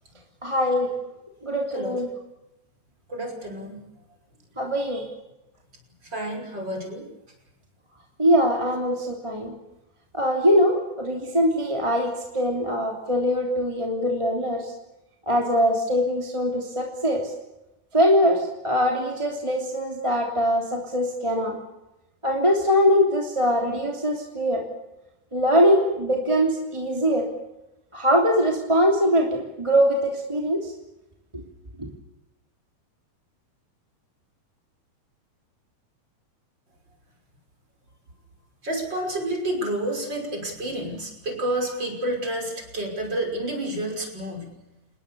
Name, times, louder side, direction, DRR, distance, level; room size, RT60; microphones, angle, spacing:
voice 1, 0.4-0.9 1.4-2.1 4.6-5.0 8.2-9.5 10.1-14.7 15.3-17.2 17.9-21.5 22.2-24.6 25.3-27.3 27.9-30.7 31.3-31.4, equal, 10° right, 0 dB, 2.6 m, -22 dB
voice 2, 1.7-2.0 3.1-3.8 4.8-5.0 6.0-7.1 38.6-44.6, right 1 dB, 25° right, 2 dB, 6.2 m, -30 dB
28.5 x 20.5 x 7.0 m, 0.93 s
omnidirectional pair, 4.6 m